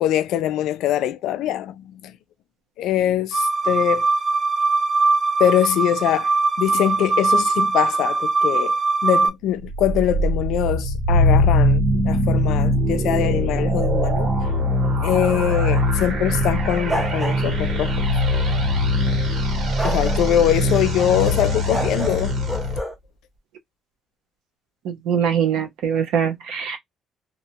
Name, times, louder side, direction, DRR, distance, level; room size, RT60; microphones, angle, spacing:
voice 1, 0.0-2.1 2.8-4.1 5.4-6.3 6.6-14.3 15.0-17.9 19.8-22.3, left 11 dB, 80° left, 0.3 m, -23 dB
sound 1, 3.3-9.3, right 3 dB, 40° right, 0.6 m, -21 dB
sound 2, 9.5-22.8, left 1 dB, 60° right, 1.5 m, -21 dB
sound 3, 16.9-18.0 19.8-21.2 21.7-23.0, equal, ahead, 0.8 m, -30 dB
voice 2, 24.8-26.8, right 8 dB, 85° right, 0.7 m, -22 dB
2.6 x 2.1 x 2.7 m
cardioid pair, 95°, 0 cm